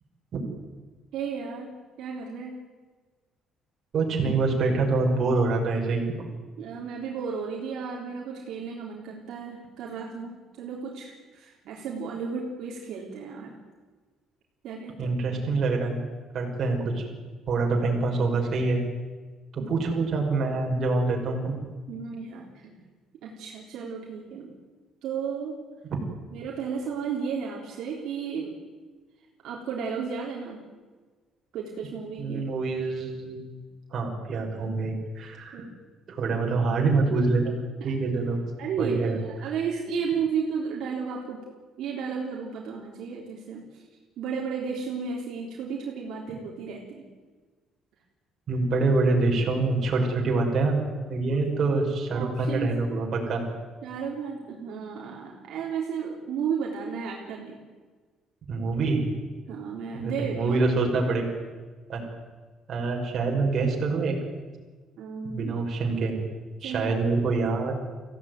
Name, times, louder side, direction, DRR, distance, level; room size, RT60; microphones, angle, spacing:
voice 1, 1.1-1.7 2.0-2.6 6.6-13.6 14.6-15.2 19.6-19.7 21.9-22.8 23.2-24.5 25.0-25.6 26.3-28.6 29.4-30.6 31.5-32.5 35.5-35.8 37.8-37.9 38.6-41.4 41.8-43.8 44.2-47.1 51.3-51.4 52.1-52.8 53.8-57.6 59.5-60.6 61.0-61.1 65.0-65.6 66.6-66.9, right 6 dB, 60° right, -2 dB, 3.6 m, -33 dB
voice 2, 3.9-6.0 15.0-16.0 16.3-17.0 17.5-18.8 19.5-21.7 32.2-33.4 33.9-35.6 36.1-37.5 37.8-38.4 38.8-39.2 39.4-39.5 48.5-50.8 51.1-53.4 58.5-59.1 59.9-61.3 61.9-62.0 62.7-64.2 65.2-66.2 66.6-67.8, right 3 dB, 35° right, 0 dB, 5.6 m, -25 dB
25.0 x 16.5 x 9.5 m, 1.4 s
cardioid pair, 175°, 0 cm